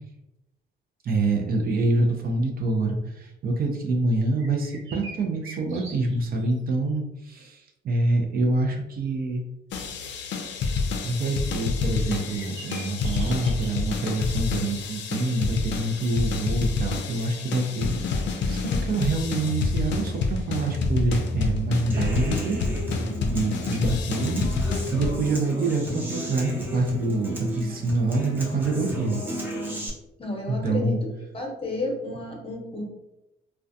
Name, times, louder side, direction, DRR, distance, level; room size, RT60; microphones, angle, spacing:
voice 1, 1.0-9.4 11.0-18.2 18.5-22.6 23.3-24.5 24.9-29.2 30.5-31.0, right 2 dB, 50° right, 2 dB, 0.5 m, -26 dB
sound 1, 4.4-6.5 6.7-6.8 12.1-13.7, right 3 dB, 75° right, 0.8 m, -43 dB
sound 2, 9.7-25.1, left 4 dB, 65° left, 0.4 m, -28 dB
Human voice / Acoustic guitar, 21.9-29.9, equal, 10° right, 0.6 m, -33 dB
voice 2, 30.2-30.9 31.3-32.9, left 2 dB, 30° left, -1 dB, 0.8 m, -31 dB
2.3 x 2.2 x 2.6 m, 0.91 s
cardioid pair, 90°, 20 cm